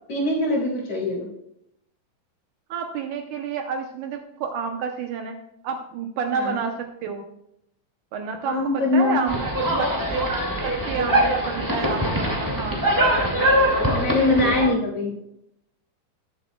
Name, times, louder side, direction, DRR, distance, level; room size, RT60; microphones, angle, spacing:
voice 1, 0.1-1.3 6.3-6.6 8.4-9.2 13.9-15.1, left 2 dB, 45° left, -3 dB, 3.3 m, -23 dB
voice 2, 2.7-5.4 5.6-7.3 8.1-10.3 10.6-13.5, right 5 dB, 75° right, 4 dB, 2.1 m, -30 dB
sound 1, 9.3-14.7, equal, 10° right, 1.1 m, -22 dB
19.0 x 7.6 x 2.3 m, 0.79 s
omnidirectional pair, 4.0 m